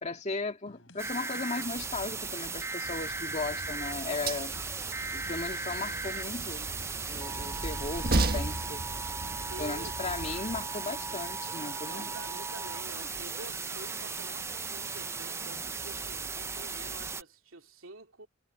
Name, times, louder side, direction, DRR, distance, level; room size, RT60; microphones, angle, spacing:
voice 1, 0.0-4.5 5.1-6.7 7.1-8.8 9.6-12.1, left 3 dB, 35° left, 2.2 m, -36 dB
sound 1, 0.7-15.5, left 2 dB, 70° left, 5.1 m, -56 dB
sound 2, 1.0-17.2, right 4 dB, 15° right, 0.4 m, -37 dB
Train, 2.9-10.6, right 2 dB, 50° right, 1.5 m, -36 dB
voice 2, 9.4-10.0 10.4-10.5 11.8-18.3, right 3 dB, 75° right, 2.7 m, -48 dB
head